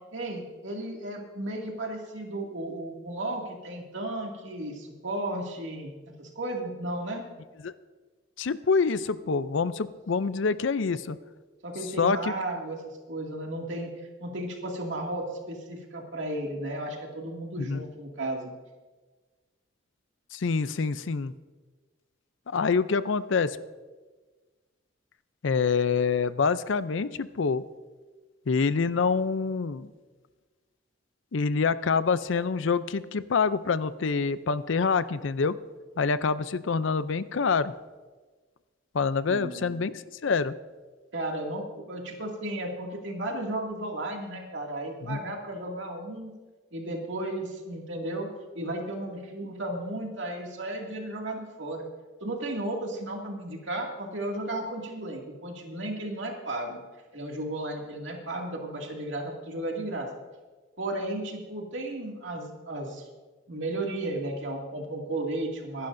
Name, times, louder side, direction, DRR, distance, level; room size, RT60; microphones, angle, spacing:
voice 1, 0.1-5.9 6.2-7.2 11.6-18.5 39.3-39.8 41.1-41.6 41.9-46.3 46.7-48.3 48.5-51.9 52.2-56.8 57.1-60.1 60.8-63.1 63.5-65.9, right 1 dB, 65° right, 0 dB, 2.3 m, -34 dB
voice 2, 8.4-11.2 12.0-12.3 17.6-17.8 20.3-21.3 22.5-23.6 25.4-27.6 28.5-29.9 31.3-35.6 36.0-37.7 38.9-40.5 45.0-45.2, left 5 dB, 70° left, 14 dB, 0.5 m, -26 dB
25.0 x 11.0 x 2.6 m, 1.3 s
head